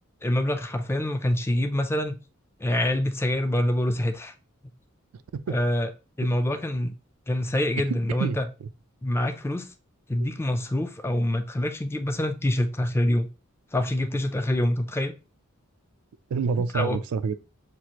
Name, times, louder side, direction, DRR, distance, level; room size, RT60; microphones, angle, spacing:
voice 1, 0.2-2.2 2.6-4.3 5.5-5.9 6.2-6.9 7.3-8.5 9.0-9.7 10.1-13.3 13.7-15.1 16.7-17.0, left 1 dB, 10° left, 0.4 m, -25 dB
voice 2, 7.9-8.4 10.2-10.3 16.3-17.4, right 5 dB, 85° right, 0.4 m, -27 dB
6.0 x 2.4 x 2.9 m
head